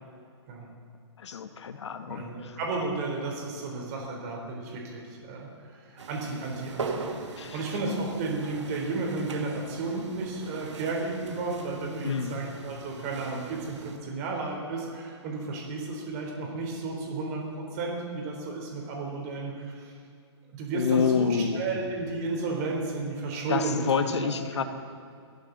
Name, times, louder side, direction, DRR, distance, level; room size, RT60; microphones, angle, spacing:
voice 1, 1.2-2.6 7.4-7.6 12.0-12.4 20.7-21.6 23.5-24.6, left 6 dB, 75° left, 7 dB, 1.3 m, -28 dB
voice 2, 2.1-7.1 7.3-19.9 20.5-24.6, right 3 dB, 35° right, 0 dB, 3.5 m, -33 dB
sound 1, 6.0-14.0, right 4 dB, 90° right, 1.6 m, -41 dB
22.5 x 15.0 x 4.0 m, 2.4 s
hypercardioid pair, 155°, 15 cm